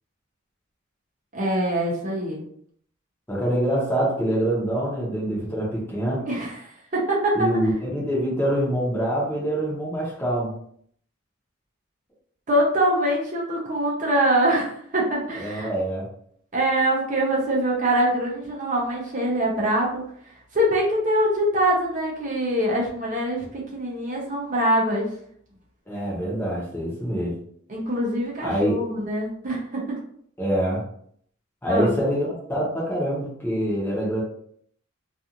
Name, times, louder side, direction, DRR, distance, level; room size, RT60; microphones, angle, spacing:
voice 1, 1.3-2.4 6.3-7.4 12.5-15.7 16.5-20.0 20.5-25.1 27.7-29.8 31.7-31.9, right 1 dB, 35° right, -3 dB, 0.6 m, -24 dB
voice 2, 3.3-6.2 7.3-10.5 15.3-16.1 25.9-27.3 28.4-28.8 30.4-30.8 31.6-34.2, right 1 dB, 10° left, -5 dB, 0.8 m, -25 dB
2.4 x 2.4 x 2.8 m, 0.63 s
head